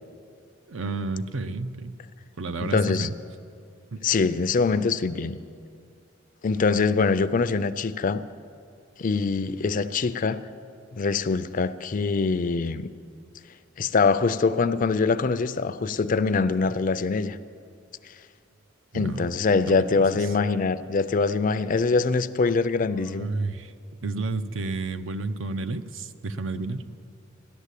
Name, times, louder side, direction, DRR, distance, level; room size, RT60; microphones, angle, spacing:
voice 1, 0.7-2.0 2.4-3.1 3.9-4.1 18.9-19.3 19.7-19.8 23.1-23.7 24.0-26.8, right 3 dB, 70° right, 0.6 m, -31 dB
voice 2, 2.6-3.1 4.0-5.4 6.4-8.2 9.0-10.4 10.9-12.9 13.8-17.4 18.9-23.3, left 4 dB, 40° left, 0.4 m, -24 dB
13.5 x 11.0 x 8.3 m
head